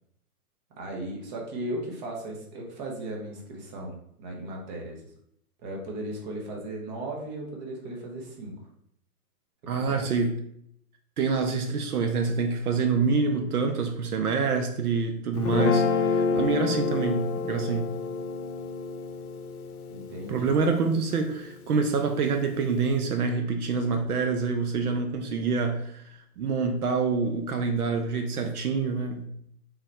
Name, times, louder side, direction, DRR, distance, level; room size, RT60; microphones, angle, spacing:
voice 1, 0.8-5.0 5.6-8.6 9.8-10.0 19.9-20.7, right 1 dB, 30° right, 0 dB, 1.1 m, -36 dB
voice 2, 9.7-10.3 11.2-17.9 20.3-29.3, right 4 dB, 75° right, 5 dB, 0.8 m, -26 dB
Guitar, 15.4-21.7, left 5 dB, 75° left, 0.7 m, -29 dB
4.0 x 2.7 x 4.3 m, 0.71 s
hypercardioid pair, 145°, 45 cm